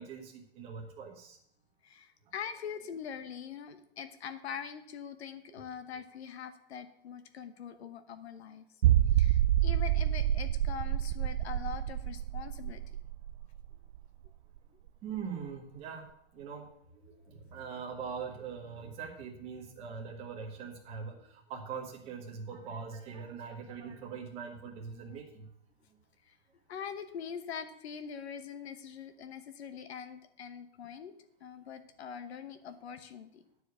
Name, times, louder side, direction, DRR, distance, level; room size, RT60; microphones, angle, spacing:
voice 1, 0.0-1.4 5.6-5.7 7.7-7.8 15.0-16.0 16.3-16.7 16.9-25.5, right 6 dB, 20° right, 0 dB, 1.5 m, -42 dB
voice 2, 1.8-8.6 9.1-12.8 26.2-26.4 26.7-31.1 31.4-33.4, left 7 dB, 75° left, 10 dB, 1.1 m, -43 dB
sound 1, 8.8-14.3 14.6-14.7 15.2-15.3, right 12 dB, 80° right, 0.5 m, -28 dB
10.0 x 4.9 x 8.1 m, 0.73 s
supercardioid pair, 175°, 32 cm